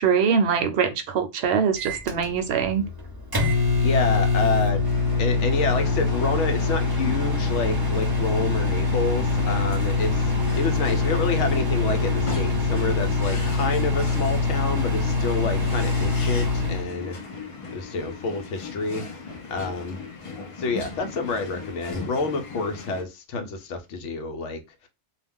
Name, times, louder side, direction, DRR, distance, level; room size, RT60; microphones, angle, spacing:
voice 1, 0.0-2.9, right 6 dB, 65° right, 0.8 m, -23 dB
Microwave oven, 1.8-16.9, left 3 dB, 25° right, 0.6 m, -24 dB
voice 2, 3.8-4.8 5.2-17.2 17.7-19.0 19.5-20.0 20.6-24.9, left 3 dB, 80° left, 0.9 m, -28 dB
sound 1, 4.8-23.0, left 4 dB, 40° left, 0.4 m, -38 dB
2.3 x 2.1 x 3.5 m
omnidirectional pair, 1.2 m